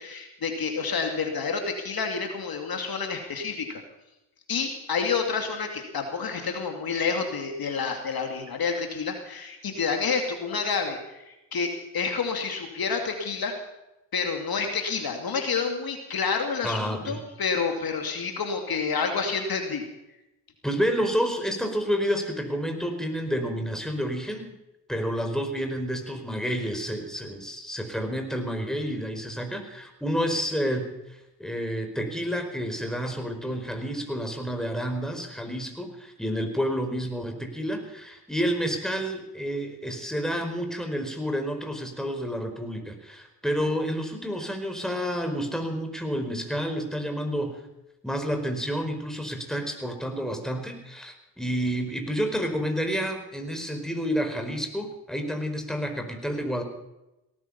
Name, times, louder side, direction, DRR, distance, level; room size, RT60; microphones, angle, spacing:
voice 1, 0.0-3.8 4.5-13.5 14.1-19.8, left 5 dB, 55° left, 4 dB, 2.7 m, -29 dB
voice 2, 16.6-17.2 20.6-24.5 24.9-30.9 31.4-47.6 48.0-56.6, equal, ahead, 4 dB, 4.7 m, -29 dB
18.0 x 14.0 x 5.6 m, 0.96 s
supercardioid pair, 55°, 42 cm